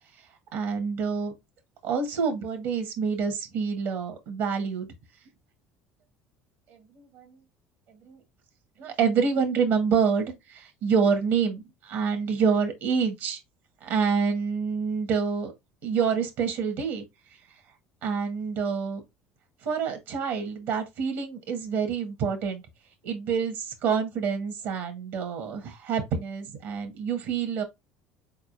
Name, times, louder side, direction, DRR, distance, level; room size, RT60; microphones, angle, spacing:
voice 1, 0.5-1.3 1.8-4.9 6.9-7.4 8.1-8.2 8.8-13.4 13.8-15.5 15.8-17.0 18.0-19.0 19.6-22.6 23.0-27.6, right 6 dB, 70° right, 1.2 m, -27 dB
4.2 x 3.6 x 2.5 m
hypercardioid pair, 80°, 4 cm